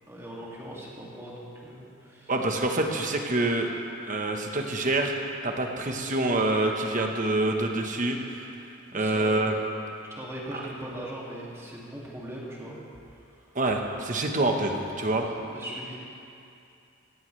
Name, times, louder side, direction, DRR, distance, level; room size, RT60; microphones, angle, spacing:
voice 1, 0.1-2.3 8.9-9.4 10.1-12.8 13.4-13.5 15.1-16.0, right 1 dB, 15° right, -5 dB, 2.4 m, -40 dB
voice 2, 2.3-3.7 4.0-5.1 5.4-8.2 8.9-9.5 13.5-15.3, right 2 dB, 40° right, 2 dB, 1.2 m, -26 dB
16.5 x 16.0 x 3.4 m, 2.6 s
head